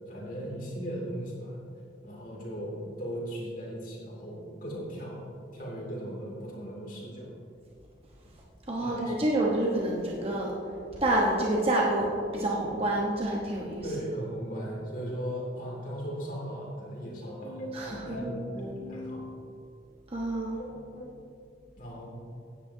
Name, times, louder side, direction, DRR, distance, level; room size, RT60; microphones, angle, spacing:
voice 1, 0.1-1.6 2.0-5.3 5.5-7.3 8.8-9.1 13.8-19.3 20.6-21.2 21.8-22.2, equal, 50° left, -3 dB, 2.6 m, -37 dB
voice 2, 8.7-10.5 11.0-13.8 17.7-18.3 20.1-20.6, right 1 dB, 30° right, -3 dB, 1.1 m, -28 dB
17.0 x 9.7 x 2.8 m, 2.5 s
head